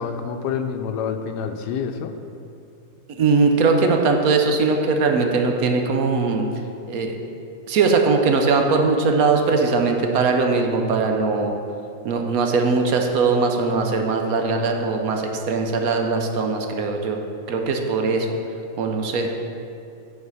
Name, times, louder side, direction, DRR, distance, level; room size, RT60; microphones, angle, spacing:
voice 1, 0.0-2.2, left 6 dB, 85° left, 7 dB, 1.2 m, -27 dB
voice 2, 3.2-6.5 6.9-7.2 7.7-11.6 12.0-17.2 17.5-18.4 18.8-19.3, right 4 dB, 70° right, 3 dB, 1.1 m, -20 dB
8.5 x 4.2 x 5.4 m, 2.5 s
omnidirectional pair, 1.7 m